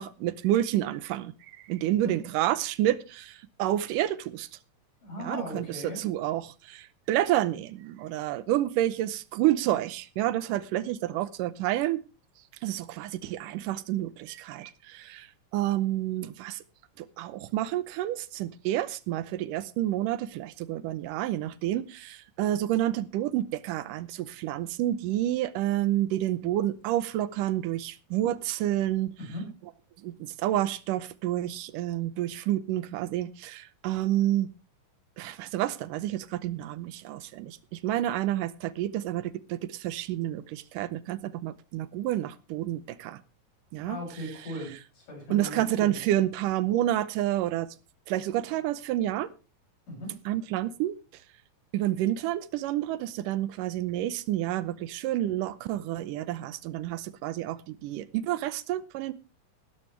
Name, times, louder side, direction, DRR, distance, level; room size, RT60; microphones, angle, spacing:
voice 1, 0.0-4.5 5.2-12.0 12.6-15.3 15.5-16.6 17.0-29.1 30.0-34.5 35.2-43.2 43.7-44.0 45.3-47.7 48.1-49.3 50.3-51.0 51.7-59.1, right 13 dB, 80° right, 17 dB, 2.3 m, -29 dB
voice 2, 5.0-6.0 29.2-29.4 43.8-46.0 49.9-50.1, equal, 70° left, 0 dB, 8.3 m, -38 dB
15.5 x 12.5 x 3.3 m, 0.31 s
omnidirectional pair, 3.8 m